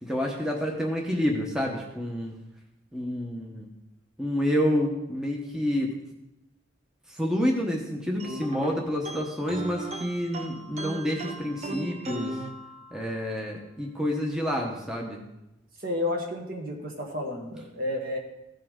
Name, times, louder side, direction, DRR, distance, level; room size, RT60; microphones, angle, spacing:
voice 1, 0.0-2.4 2.9-3.7 4.2-5.9 7.1-12.4 12.9-15.2, equal, 5° right, -1 dB, 0.9 m, -28 dB
Tacks Interlude, 8.2-13.3, right 1 dB, 35° right, 0.7 m, -37 dB
voice 2, 15.8-18.2, left 2 dB, 50° right, 1 dB, 1.7 m, -31 dB
15.5 x 5.6 x 3.6 m, 0.90 s
head